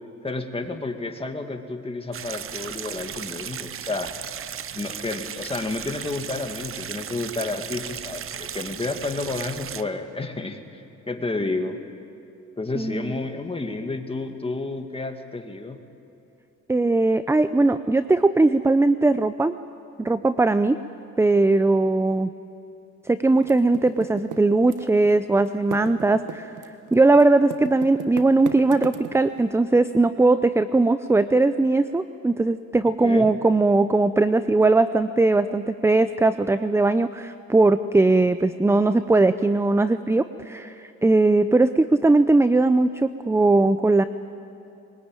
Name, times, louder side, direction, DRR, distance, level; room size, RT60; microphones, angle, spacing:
voice 1, 0.2-4.1 4.7-11.8 12.6-15.8 33.0-33.3, left 3 dB, 20° left, 5 dB, 2.0 m, -31 dB
sound 1, 2.1-9.8, right 8 dB, 45° right, 0.8 m, -36 dB
voice 2, 12.7-13.1 16.7-19.5 20.0-20.8 21.2-22.3 23.1-26.5 26.9-44.0, right 2 dB, 10° right, 12 dB, 0.5 m, -19 dB
Typing, 23.4-25.1 25.4-29.4, right 10 dB, 85° right, 1.4 m, -36 dB
22.0 x 19.5 x 9.0 m, 2.8 s
cardioid pair, 90°, 30 cm